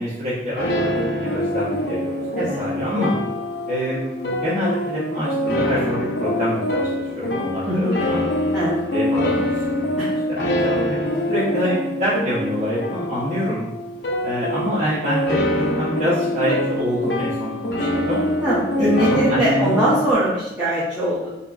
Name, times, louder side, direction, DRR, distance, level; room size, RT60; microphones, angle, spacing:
voice 1, 0.0-3.2 3.7-8.2 8.9-9.9 10.3-11.0 11.3-13.7 14.2-18.2 18.8-20.0, equal, 40° right, -10 dB, 0.9 m, -26 dB
sound 1, 0.6-20.1, left 1 dB, 60° left, 0.6 m, -24 dB
voice 2, 2.4-2.7 7.6-8.0 8.5-8.8 10.0-10.1 18.4-21.3, right 1 dB, 5° right, -11 dB, 0.8 m, -21 dB
4.7 x 2.9 x 2.4 m, 0.98 s
head